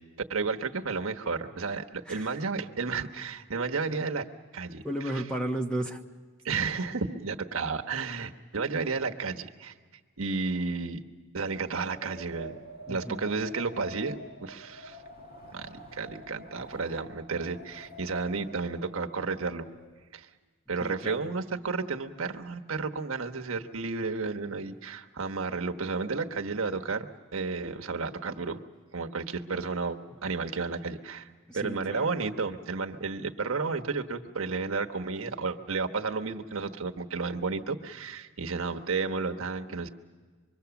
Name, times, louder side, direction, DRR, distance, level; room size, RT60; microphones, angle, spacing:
voice 1, 0.3-4.3 4.5-4.8 6.4-9.7 10.2-11.0 11.3-12.6 12.9-14.2 14.4-15.0 15.5-19.7 20.1-20.3 20.7-28.6 28.9-31.3 31.5-39.9, right 4 dB, 80° right, 4 dB, 1.2 m, -32 dB
voice 2, 2.0-2.4 4.8-6.0 12.9-13.2 20.8-21.3 31.5-32.1, right 1 dB, 5° left, 3 dB, 1.0 m, -34 dB
Wind, 11.6-20.1, equal, 45° left, 2.0 m, -47 dB
25.5 x 23.0 x 7.0 m, 1.5 s
head